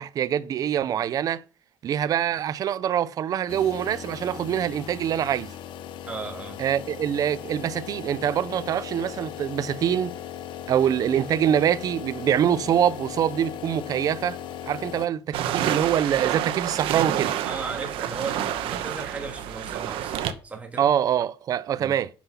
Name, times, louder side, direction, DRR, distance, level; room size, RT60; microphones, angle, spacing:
voice 1, 0.0-1.4 1.8-5.5 6.6-10.1 10.7-14.4 14.7-15.2 15.5-17.3 20.8-22.1, right 9 dB, 40° right, 0.5 m, -24 dB
sound 1, 3.5-15.1, left 10 dB, 65° left, 0.8 m, -38 dB
voice 2, 6.1-6.6 17.4-20.2 20.4-20.9 21.8-21.9, right 4 dB, 15° right, 1.9 m, -35 dB
sound 2, 15.3-20.3, right 10 dB, 75° right, 1.0 m, -28 dB
8.5 x 5.8 x 5.7 m
cardioid pair, 170°, 9 cm